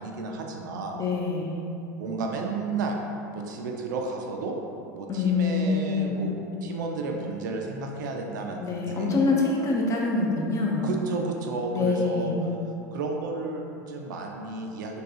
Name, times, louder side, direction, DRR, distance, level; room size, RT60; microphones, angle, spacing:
voice 1, 0.0-1.0 2.0-3.0 3.3-4.6 4.9-6.3 6.6-9.1 10.8-12.3 12.9-15.0, right 3 dB, 80° right, 1 dB, 0.4 m, -32 dB
voice 2, 0.9-1.6 5.1-6.3 8.6-10.9 11.7-12.5, left 3 dB, 30° left, -2 dB, 0.6 m, -25 dB
3.6 x 2.3 x 2.8 m, 2.6 s
hypercardioid pair, 90°, 10 cm